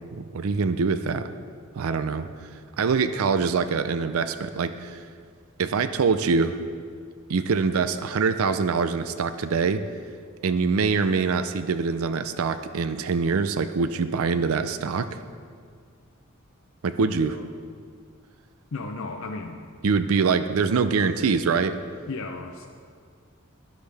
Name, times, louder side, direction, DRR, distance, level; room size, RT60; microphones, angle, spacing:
voice 1, 0.1-1.3 1.8-2.3 2.8-5.0 5.6-6.5 7.3-9.8 10.4-15.1 16.8-17.4 19.8-21.8, right 5 dB, 85° right, 11 dB, 0.5 m, -24 dB
voice 2, 17.1-17.4 18.7-20.0 22.1-22.7, left 3 dB, 70° left, 2 dB, 0.6 m, -35 dB
12.0 x 11.5 x 3.4 m, 2.1 s
head